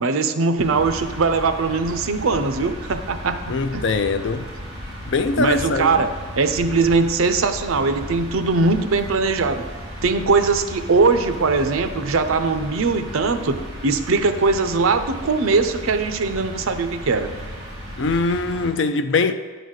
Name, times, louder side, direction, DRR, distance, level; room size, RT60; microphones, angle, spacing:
voice 1, 0.0-3.4 3.7-3.8 5.4-6.1 6.4-9.6 10.0-13.6 13.8-17.3, right 4 dB, 80° right, 9 dB, 0.6 m, -20 dB
sound 1, 0.6-18.7, equal, 20° right, 2.6 m, -35 dB
voice 2, 3.5-4.5 5.1-6.1 18.0-19.3, left 3 dB, 60° left, 9 dB, 0.4 m, -22 dB
9.3 x 4.0 x 6.4 m, 1.5 s
head